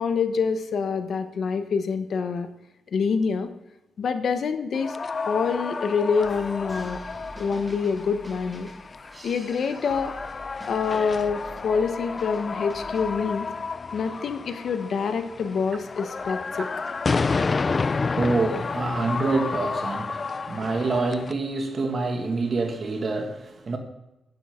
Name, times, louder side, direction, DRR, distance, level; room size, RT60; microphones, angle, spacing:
voice 1, 0.0-2.5 2.9-3.5 4.0-4.9 5.2-7.0 7.4-8.7 9.2-10.1 10.6-13.5 13.9-16.7, left 5 dB, 55° left, 1.0 m, -26 dB
sound 1, 4.7-21.3, left 4 dB, 30° left, 0.3 m, -31 dB
sound 2, 6.2-13.1, right 1 dB, 15° right, 1.8 m, -46 dB
voice 2, 16.5-16.9 17.3-23.8, right 3 dB, 40° right, 1.9 m, -27 dB
11.0 x 10.0 x 3.7 m
cardioid pair, 135°, 0 cm